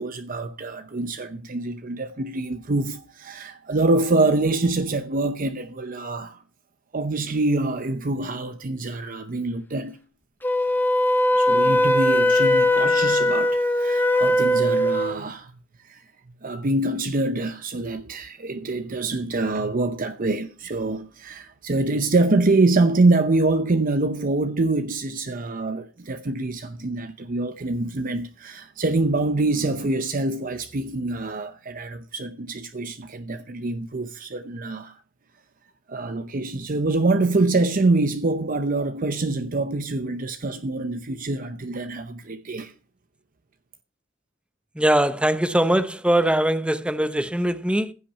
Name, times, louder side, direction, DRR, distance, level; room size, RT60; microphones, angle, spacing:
voice 1, 0.0-6.4 6.9-10.0 11.3-15.5 15.8-16.1 16.4-35.0 35.9-42.7, right 2 dB, 45° right, 0.7 m, -25 dB
Wind instrument woodwind instrument, 10.4-15.2, left 1 dB, 10° left, 1.1 m, -20 dB
voice 2, 44.8-47.9, right 1 dB, 5° right, 0.7 m, -21 dB
15.5 x 5.8 x 5.8 m
head